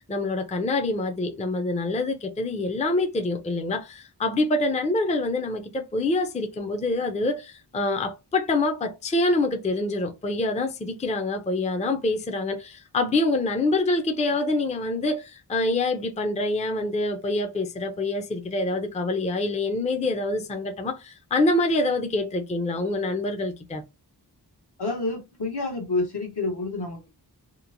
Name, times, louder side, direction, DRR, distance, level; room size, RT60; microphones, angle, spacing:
voice 1, 0.0-23.8, left 2 dB, 15° left, 0.4 m, -26 dB
voice 2, 24.8-27.1, left 2 dB, 70° left, 1.1 m, -28 dB
2.9 x 2.0 x 2.5 m
wide cardioid pair, 75°, 41 cm